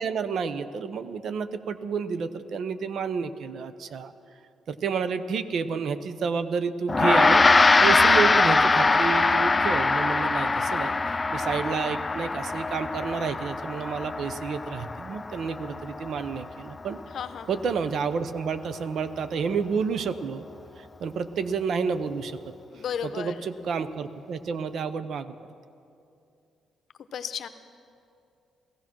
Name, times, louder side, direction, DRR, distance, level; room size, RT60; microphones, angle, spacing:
voice 1, 0.0-4.1 4.7-17.0 17.5-20.4 20.8-22.5 23.0-25.3, right 5 dB, 65° right, 12 dB, 0.7 m, -30 dB
Gong, 6.9-16.5, left 3 dB, 25° left, 0.3 m, -22 dB
voice 2, 17.1-17.5 22.7-23.4 27.1-27.5, left 8 dB, 60° left, 10 dB, 0.8 m, -33 dB
15.5 x 15.5 x 6.1 m, 2.6 s
cardioid pair, 90°, 0 cm